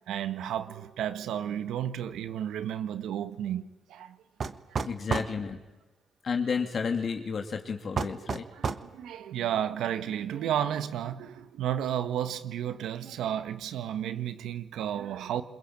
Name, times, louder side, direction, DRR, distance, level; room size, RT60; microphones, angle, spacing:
voice 1, 0.0-4.2 8.5-15.4, right 10 dB, 80° right, 1.6 m, -32 dB
sound 1, 4.4-5.4 8.0-8.9, right 5 dB, 45° right, 1.4 m, -31 dB
voice 2, 4.8-5.6 6.2-8.4, left 5 dB, 45° left, 3.1 m, -31 dB
27.0 x 22.0 x 9.0 m
cardioid pair, 90°, 0 cm